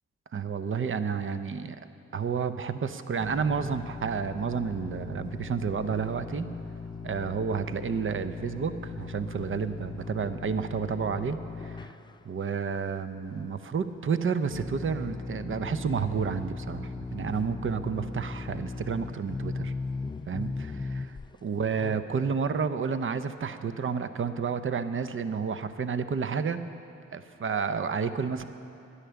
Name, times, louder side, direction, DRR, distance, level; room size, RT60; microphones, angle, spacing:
voice 1, 0.3-1.8 2.1-6.5 7.0-11.4 11.6-11.9 12.2-19.7 20.3-21.2 21.4-26.6 27.1-28.4, right 6 dB, 40° right, 11 dB, 0.7 m, -30 dB
sound 1, 3.2-12.2 12.9-13.0 13.3-13.4 14.5-21.3 21.8-22.0, left 3 dB, 15° left, 0.4 m, -38 dB
11.0 x 9.8 x 6.9 m, 2.8 s
supercardioid pair, 55°, 31 cm